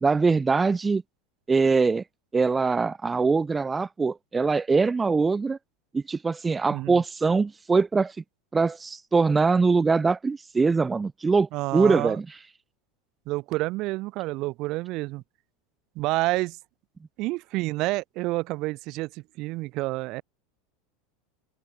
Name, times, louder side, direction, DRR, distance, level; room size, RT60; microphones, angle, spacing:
voice 1, 0.0-1.0 1.5-2.0 2.3-5.6 5.9-8.2 8.5-12.3, right 4 dB, 15° right, 0.7 m, -23 dB
voice 2, 6.7-7.0 11.5-12.2 13.3-15.2 15.9-16.6 17.2-20.2, right 20 dB, 55° right, 1.2 m, -29 dB
hypercardioid pair, 105°, 0 cm